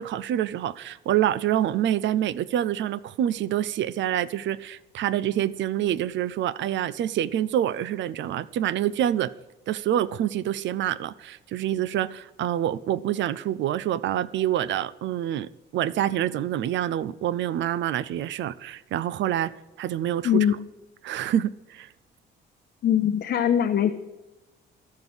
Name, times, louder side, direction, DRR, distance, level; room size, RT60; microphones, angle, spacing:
voice 1, 0.0-9.3 9.7-19.5 19.8-20.5 21.0-21.9, right 11 dB, 70° right, 19 dB, 0.4 m, -26 dB
voice 2, 20.2-20.6 22.8-23.9, left 9 dB, 55° left, 6 dB, 0.6 m, -22 dB
13.5 x 5.4 x 6.1 m, 1.1 s
cardioid pair, 90°, 20 cm